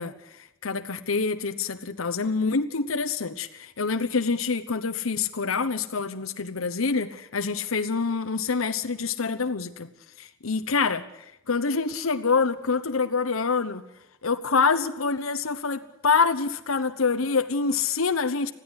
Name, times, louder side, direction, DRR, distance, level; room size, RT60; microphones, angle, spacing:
voice 1, 0.0-9.9 10.2-13.8 14.2-18.5, left 4 dB, 90° left, 1.0 m, -26 dB
21.0 x 15.0 x 9.8 m
head